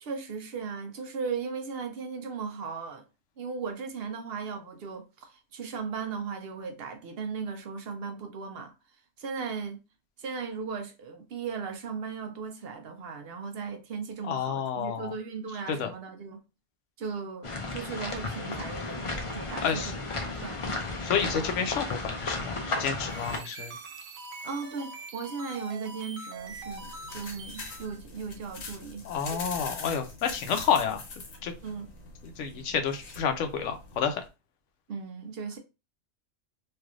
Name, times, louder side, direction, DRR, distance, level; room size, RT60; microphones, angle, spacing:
voice 1, 0.0-3.0 3.4-8.7 9.2-9.8 10.2-16.4 17.0-20.0 20.2-20.8 24.4-29.4 31.6-31.9 34.9-35.6, right 5 dB, 60° right, 0.7 m, -37 dB
voice 2, 14.2-15.1 15.7-15.9 19.6-19.9 21.0-23.7 29.0-31.0 31.4-31.5 32.2-34.2, left 7 dB, 70° left, 0.9 m, -29 dB
sound 1, 17.4-23.4, left 3 dB, 50° left, 0.3 m, -34 dB
sound 2, 22.9-28.0, right 3 dB, 90° right, 1.1 m, -43 dB
sound 3, 26.4-34.3, left 3 dB, 90° left, 1.3 m, -43 dB
3.3 x 2.7 x 2.3 m
omnidirectional pair, 1.3 m